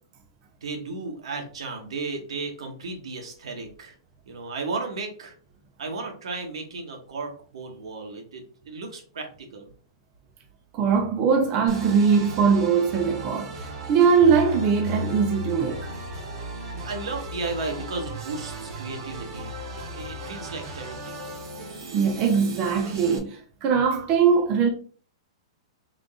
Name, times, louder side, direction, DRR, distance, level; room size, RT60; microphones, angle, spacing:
voice 1, 0.6-3.9 4.3-5.3 5.8-9.7 16.9-19.5 19.9-21.2, right 3 dB, 80° right, 1.3 m, -34 dB
voice 2, 10.7-13.5 13.9-15.9 21.9-24.7, right 6 dB, 25° right, 0.6 m, -21 dB
sound 1, 11.7-23.2, equal, 50° right, 1.0 m, -36 dB
3.7 x 2.6 x 3.6 m
hypercardioid pair, 175°, 3 cm